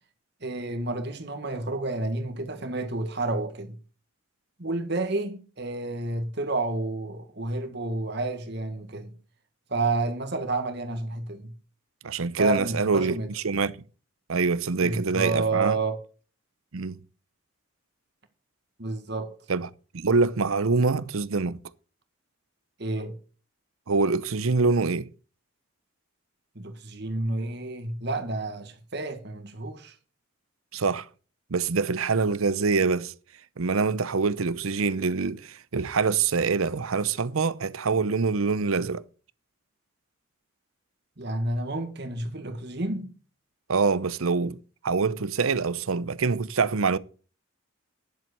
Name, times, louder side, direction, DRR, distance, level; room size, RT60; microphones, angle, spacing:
voice 1, 0.4-3.8 4.6-9.1 9.7-11.5 12.4-13.3 14.8-16.0 18.8-19.4 22.8-23.2 26.6-29.9 41.2-43.1, right 2 dB, 55° right, 1.9 m, -30 dB
voice 2, 12.0-13.8 14.3-15.8 16.7-17.0 19.5-21.6 23.9-25.1 30.7-31.1 31.5-33.1 33.6-39.0 43.7-44.6 44.8-47.0, right 4 dB, 85° right, 0.7 m, -25 dB
10.5 x 7.6 x 6.7 m
head